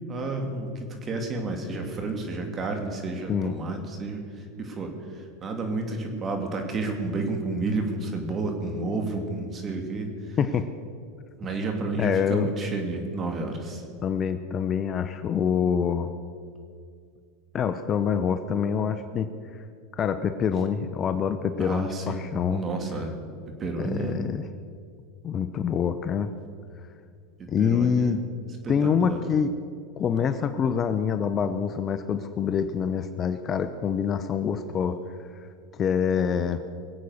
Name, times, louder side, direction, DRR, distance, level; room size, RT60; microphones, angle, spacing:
voice 1, 0.1-4.2 4.6-10.4 11.4-13.8 21.6-22.2 22.5-23.2 23.6-24.2 27.4-28.1 28.6-29.2, right 3 dB, 30° right, 4 dB, 3.0 m, -31 dB
voice 2, 10.4-10.7 12.0-12.5 14.0-16.1 17.5-19.3 19.9-22.6 23.8-24.4 25.2-26.3 27.5-28.2 28.7-29.5 30.0-35.0 35.7-36.6, left 7 dB, 35° left, 10 dB, 0.8 m, -26 dB
23.0 x 8.4 x 6.6 m, 2.2 s
hypercardioid pair, 115°, 0 cm